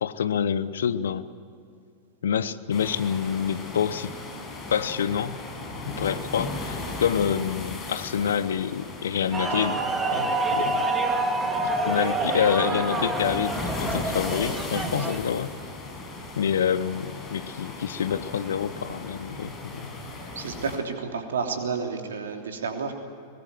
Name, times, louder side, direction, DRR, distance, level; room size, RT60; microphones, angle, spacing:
voice 1, 0.0-1.3 2.2-4.1 4.7-5.4 5.8-9.8 10.1-10.8 11.8-15.5 16.4-19.9, left 8 dB, 65° left, 15 dB, 0.9 m, -27 dB
sound 1, 2.7-20.8, left 2 dB, 25° left, 6.7 m, -37 dB
sound 2, 9.3-15.2, right 2 dB, 15° right, 2.7 m, -27 dB
voice 2, 20.3-22.9, right 5 dB, 65° right, 4 dB, 3.2 m, -30 dB
23.0 x 21.0 x 9.3 m, 2.5 s
figure-of-eight pair, 90°, 0 cm